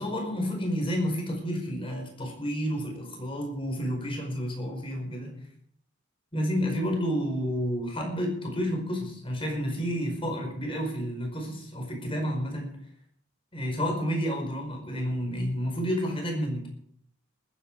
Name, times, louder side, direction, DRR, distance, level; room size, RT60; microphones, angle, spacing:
voice 1, 0.0-5.3 6.3-12.8 13.5-16.7, equal, 25° left, 2 dB, 5.0 m, -30 dB
20.5 x 10.5 x 4.9 m, 0.67 s
head